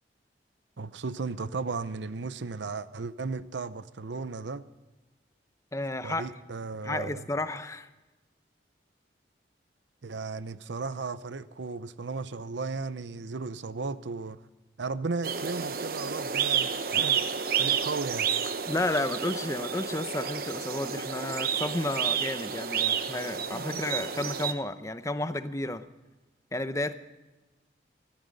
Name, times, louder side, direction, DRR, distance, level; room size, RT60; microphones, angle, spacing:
voice 1, 0.8-4.6 6.0-7.2 10.0-14.4 14.8-17.2 17.6-18.3 23.5-23.7, right 4 dB, 85° right, 14 dB, 0.7 m, -35 dB
voice 2, 5.7-6.3 6.8-7.9 18.7-25.8 26.5-26.9, left 2 dB, 15° left, 11 dB, 0.7 m, -32 dB
sound 1, 15.2-24.5, right 7 dB, 55° right, 0.9 m, -30 dB
16.5 x 13.0 x 5.3 m, 1.1 s
head